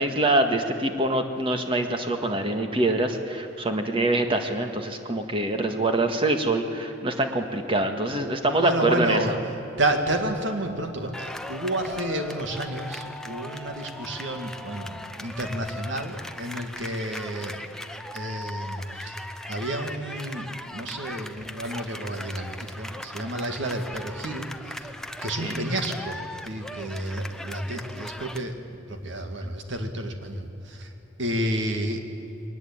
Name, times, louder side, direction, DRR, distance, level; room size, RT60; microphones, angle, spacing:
voice 1, 0.0-9.4 25.4-25.6, right 2 dB, 25° right, 5 dB, 1.8 m, -25 dB
voice 2, 8.6-9.4 9.8-17.6 18.1-19.1 19.5-24.5 25.2-28.5 28.9-30.9 31.2-32.0, right 1 dB, 65° right, 5 dB, 2.3 m, -30 dB
sound 1, 11.1-28.4, left 1 dB, 5° left, 0.8 m, -39 dB
22.0 x 19.5 x 8.9 m, 2.9 s
head